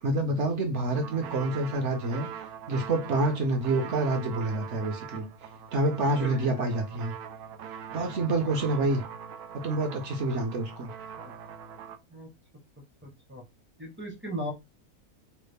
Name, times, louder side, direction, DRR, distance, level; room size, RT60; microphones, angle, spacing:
voice 1, 0.0-2.3 2.7-5.2 5.7-7.1 7.9-9.0 9.6-10.9, right 2 dB, 60° right, 1.0 m, -27 dB
sound 1, 0.9-12.0, right 7 dB, 90° right, 1.1 m, -42 dB
voice 2, 6.0-6.8 8.8-9.0 11.2-11.4 12.1-12.3 13.0-13.4 13.8-14.5, equal, 10° right, 0.5 m, -39 dB
3.3 x 2.3 x 3.3 m
omnidirectional pair, 1.5 m